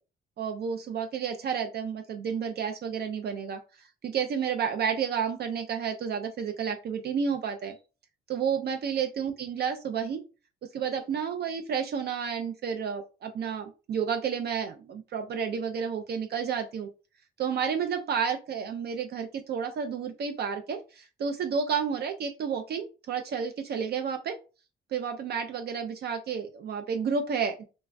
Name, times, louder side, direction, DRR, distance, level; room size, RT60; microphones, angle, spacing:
voice 1, 0.4-7.7 8.3-10.2 10.7-16.9 17.4-24.4 24.9-27.6, right 7 dB, 55° right, 6 dB, 0.4 m, -31 dB
3.2 x 2.1 x 2.4 m, 0.32 s
cardioid pair, 90°, 20 cm